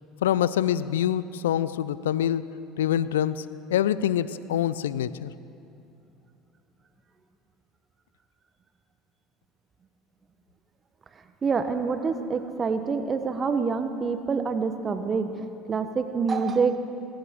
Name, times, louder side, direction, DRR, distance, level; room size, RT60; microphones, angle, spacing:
voice 1, 0.2-5.3, left 10 dB, 85° left, 17 dB, 0.4 m, -26 dB
voice 2, 11.4-16.8, right 5 dB, 35° right, 9 dB, 1.0 m, -26 dB
21.0 x 15.5 x 3.7 m, 2.8 s
hypercardioid pair, 70°, 0 cm